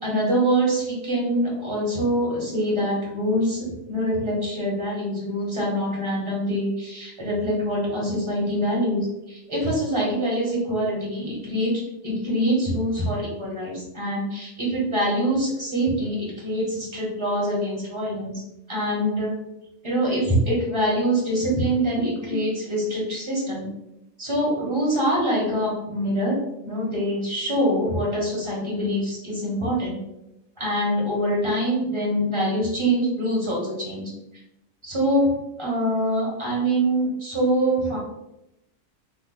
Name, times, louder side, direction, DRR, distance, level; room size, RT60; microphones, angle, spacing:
voice 1, 0.0-18.4 18.7-19.4 19.8-23.7 24.2-26.4 26.6-30.0 30.6-34.1 34.8-35.3 35.6-38.0, equal, 25° right, -4 dB, 1.0 m, -24 dB
2.7 x 2.4 x 3.8 m, 0.89 s
omnidirectional pair, 1.3 m